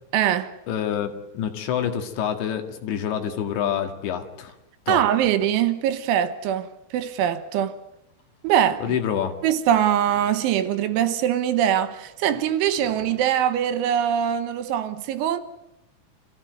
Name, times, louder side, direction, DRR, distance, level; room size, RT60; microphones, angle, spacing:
voice 1, 0.1-0.5 4.9-6.7 6.9-7.8 8.4-8.8 9.4-15.4, right 10 dB, 80° right, 3.5 m, -22 dB
voice 2, 0.7-4.5 4.9-5.1 8.8-9.3, left 9 dB, 70° left, 4.0 m, -27 dB
sound 1, 8.1-13.2, left 2 dB, 45° left, 7.7 m, -50 dB
26.5 x 15.5 x 9.4 m
omnidirectional pair, 5.5 m